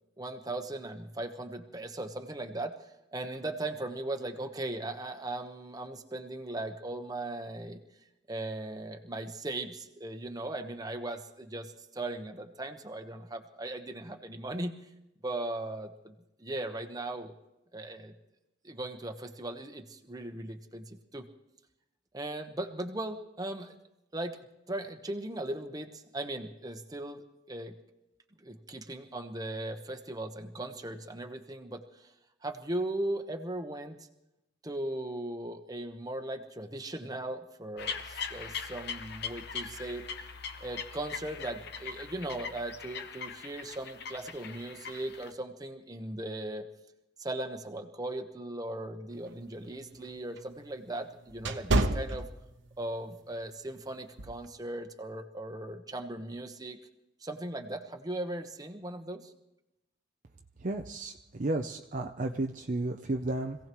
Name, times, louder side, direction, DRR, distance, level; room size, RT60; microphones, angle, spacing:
voice 1, 0.2-7.8 8.3-14.9 15.2-17.3 17.7-18.1 18.6-21.3 22.1-23.8 24.1-24.4 24.7-27.8 28.4-32.1 32.4-34.1 34.6-40.1 40.6-46.6 47.2-52.2 52.8-56.8 57.2-59.3, right 1 dB, 20° right, 5 dB, 1.1 m, -38 dB
sound 1, 37.8-45.3, left 6 dB, 55° left, 0.9 m, -41 dB
sound 2, 49.2-52.9 53.3-53.6 54.2-54.4, right 2 dB, 70° right, 1.0 m, -31 dB
voice 2, 60.6-63.6, right 2 dB, 40° right, 4 dB, 0.6 m, -33 dB
26.0 x 17.0 x 3.1 m, 0.92 s
head